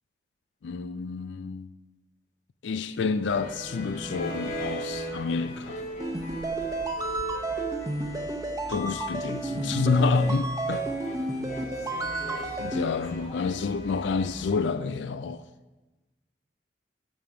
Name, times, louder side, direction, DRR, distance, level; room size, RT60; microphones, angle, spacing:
voice 1, 0.6-1.7 2.6-5.8 8.7-10.8 12.6-15.4, left 4 dB, 85° left, 0.4 m, -28 dB
sound 1, 3.3-14.6, equal, 40° left, 1.4 m, -39 dB
sound 2, 6.0-12.8, right 2 dB, 20° right, 0.7 m, -32 dB
voice 2, 11.4-12.5 13.1-13.6, equal, 20° left, 1.4 m, -46 dB
11.0 x 7.1 x 5.0 m
head